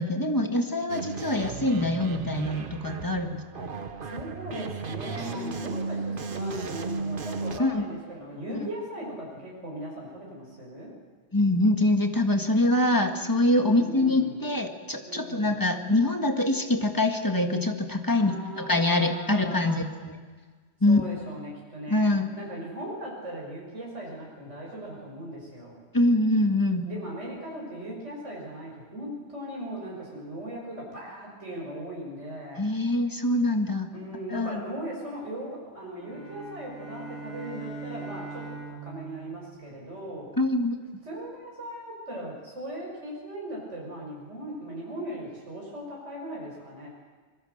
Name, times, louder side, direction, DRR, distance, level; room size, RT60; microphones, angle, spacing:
voice 1, 0.0-3.4 7.6-7.8 8.5-8.6 11.3-20.1 20.8-21.0 21.9-22.3 25.9-26.8 32.6-33.9 34.3-34.6 40.4-40.8, left 1 dB, 15° left, 4 dB, 1.8 m, -24 dB
sound 1, 0.9-7.6, right 4 dB, 50° right, 1.3 m, -35 dB
voice 2, 4.0-10.9 13.6-14.4 15.1-15.6 18.2-19.8 20.9-25.8 26.8-32.7 33.9-40.3 41.1-46.9, right 1 dB, 75° right, -3 dB, 6.1 m, -38 dB
sound 2, 36.0-40.4, right 3 dB, 70° left, 4.1 m, -42 dB
25.5 x 21.5 x 6.7 m, 1.5 s
omnidirectional pair, 1.2 m